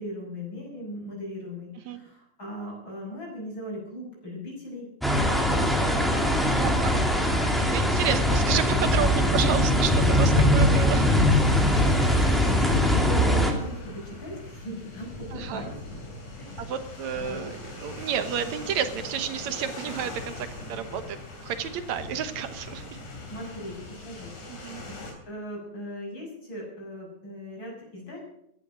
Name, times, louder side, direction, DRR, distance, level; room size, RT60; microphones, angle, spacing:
voice 1, 0.0-4.9 5.2-6.7 8.1-8.2 11.9-15.7 16.4-16.7 17.1-17.5 23.3-28.2, equal, 40° left, -2 dB, 6.9 m, -39 dB
sound 1, 5.0-13.5, left 1 dB, ahead, 1.9 m, -21 dB
voice 2, 6.6-6.9 7.7-11.2 15.3-15.6 16.6-21.2 21.4-22.9 24.5-24.8, right 8 dB, 75° right, 10 dB, 2.4 m, -31 dB
sound 2, 9.5-25.1, left 2 dB, 85° left, 4.7 m, -41 dB
15.5 x 12.5 x 6.2 m, 0.74 s
omnidirectional pair, 3.3 m